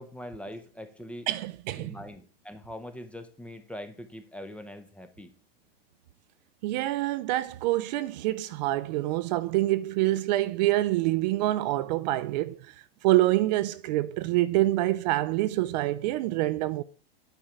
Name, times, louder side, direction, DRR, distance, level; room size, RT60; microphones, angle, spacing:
voice 1, 0.0-1.3 1.8-5.3, left 1 dB, 5° left, 0.6 m, -42 dB
voice 2, 1.3-1.9 6.6-12.6 13.0-16.8, right 16 dB, 45° right, 0.4 m, -26 dB
8.9 x 3.7 x 5.5 m
hypercardioid pair, 120°, 30 cm